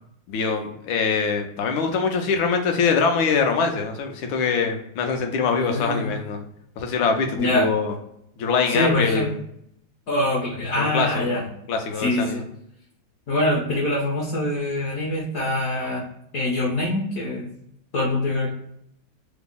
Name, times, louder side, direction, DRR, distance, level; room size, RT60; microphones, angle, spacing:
voice 1, 0.3-6.4 6.8-7.9 8.4-9.4 10.8-11.3 11.7-12.4, left 5 dB, 85° left, 4 dB, 1.4 m, -23 dB
voice 2, 5.5-6.1 7.4-7.7 8.7-9.3 10.1-11.5 12.0-12.4 13.3-16.1 16.3-17.5 17.9-18.5, left 1 dB, 60° left, -2 dB, 1.0 m, -24 dB
3.7 x 2.0 x 3.5 m, 0.74 s
omnidirectional pair, 2.1 m